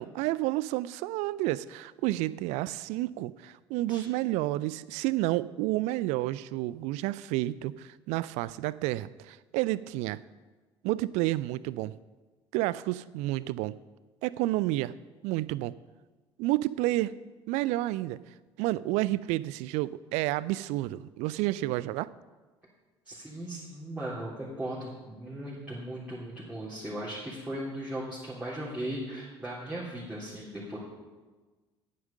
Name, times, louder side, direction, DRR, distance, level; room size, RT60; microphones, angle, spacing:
voice 1, 0.0-10.2 10.8-12.0 12.5-13.8 14.2-14.9 15.2-15.7 16.4-17.1 17.5-18.2 18.6-22.1, right 17 dB, 55° right, 19 dB, 0.4 m, -30 dB
voice 2, 23.1-30.8, right 1 dB, 10° right, -9 dB, 3.5 m, -37 dB
11.0 x 9.4 x 5.4 m, 1.3 s
figure-of-eight pair, 55°, 14 cm